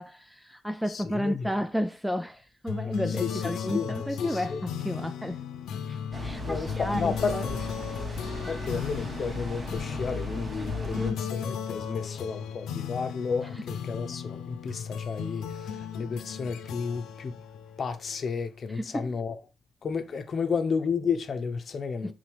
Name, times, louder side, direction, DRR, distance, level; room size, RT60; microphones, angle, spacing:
voice 1, 0.0-5.4 5.9-7.4 10.8-11.2 18.8-19.1 22.0-22.1, equal, ahead, 0.3 m, -32 dB
voice 2, 0.9-1.5 3.1-4.6 6.4-7.6 8.4-17.4 17.8-19.4 19.8-22.1, left 5 dB, 40° left, 0.8 m, -32 dB
sound 1, 2.7-18.5, left 7 dB, 80° left, 0.8 m, -36 dB
sound 2, 6.1-11.1, equal, 25° right, 1.3 m, -37 dB
6.0 x 4.0 x 4.8 m
cardioid pair, 125°, 0 cm